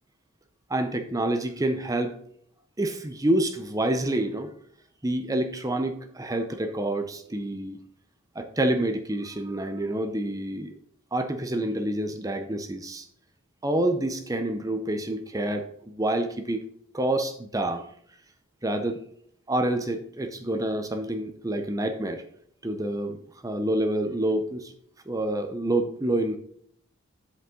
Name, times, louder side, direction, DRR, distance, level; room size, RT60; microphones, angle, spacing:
voice 1, 0.7-2.2 2.8-4.5 5.0-7.8 8.3-10.7 11.1-13.1 13.6-16.6 16.9-17.8 18.6-19.0 19.5-22.2 22.6-24.7 25.1-26.4, right 1 dB, 15° right, 7 dB, 0.6 m, -27 dB
8.3 x 7.8 x 3.8 m, 0.65 s
head